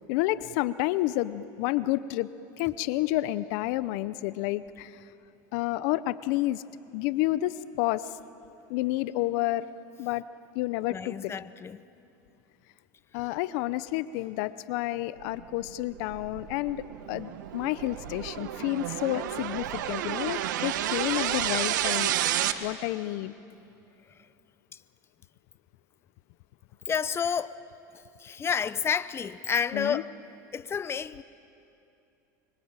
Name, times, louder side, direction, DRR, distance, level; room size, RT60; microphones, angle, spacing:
voice 1, 0.1-2.3 2.6-5.0 5.5-6.6 6.9-8.2 8.7-9.7 10.0-10.2 10.5-11.3 13.1-22.1 22.6-23.3 29.7-30.0, left 16 dB, 65° left, 0.8 m, -30 dB
voice 2, 10.9-11.8 26.9-27.5 28.2-30.1 30.5-31.2, left 7 dB, 25° left, 0.8 m, -30 dB
sound 1, 15.6-22.5, right 12 dB, 85° right, 1.3 m, -31 dB
24.5 x 24.0 x 9.0 m
supercardioid pair, 100°, 10 cm